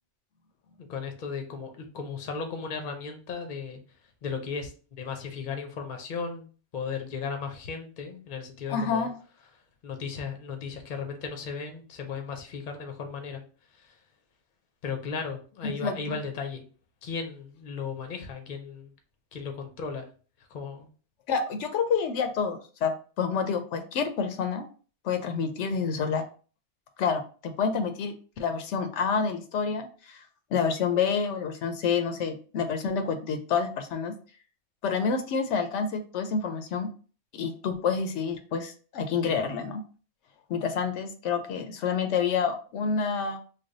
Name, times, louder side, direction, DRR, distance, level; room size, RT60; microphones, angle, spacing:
voice 1, 0.8-3.8 4.2-4.7 5.0-9.1 9.8-13.4 13.8-13.9 14.8-16.6 17.0-18.9 19.3-20.1 20.5-20.9, left 5 dB, 50° left, 5 dB, 0.7 m, -36 dB
voice 2, 8.7-9.1 15.6-16.2 21.3-24.6 25.0-26.2 27.0-30.2 30.5-34.1 34.8-36.9 37.3-39.8 40.5-43.4, left 6 dB, 85° left, 7 dB, 0.9 m, -28 dB
3.3 x 2.3 x 3.8 m, 0.39 s
omnidirectional pair, 1.2 m